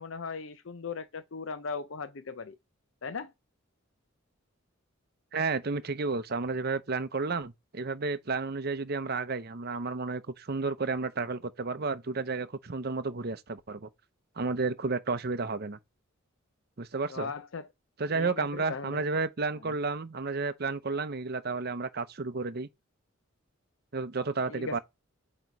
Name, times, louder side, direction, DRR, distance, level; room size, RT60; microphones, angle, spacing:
voice 1, 0.0-2.6 3.0-3.3 17.1-17.7 18.1-19.0 19.6-19.7 24.5-24.8, left 4 dB, 70° left, 0.7 m, -38 dB
voice 2, 5.3-13.9 14.4-15.8 16.8-17.3 18.0-22.7 23.9-24.8, right 4 dB, 50° right, 0.7 m, -32 dB
8.1 x 3.0 x 4.7 m
head